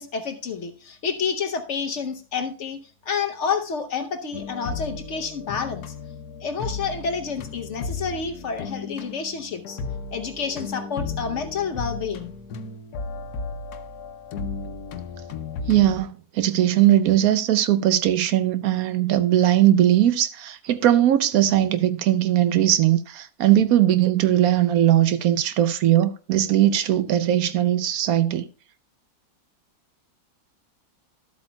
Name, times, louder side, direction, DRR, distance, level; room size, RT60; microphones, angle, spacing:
voice 1, 0.0-2.8 3.1-5.8 6.4-9.8 10.1-12.3, left 6 dB, 55° left, 1.0 m, -29 dB
sound 1, 4.3-16.0, left 4 dB, 80° left, 1.2 m, -34 dB
voice 2, 15.7-28.5, right 12 dB, 70° right, 1.0 m, -19 dB
12.5 x 8.0 x 2.2 m
omnidirectional pair, 1.7 m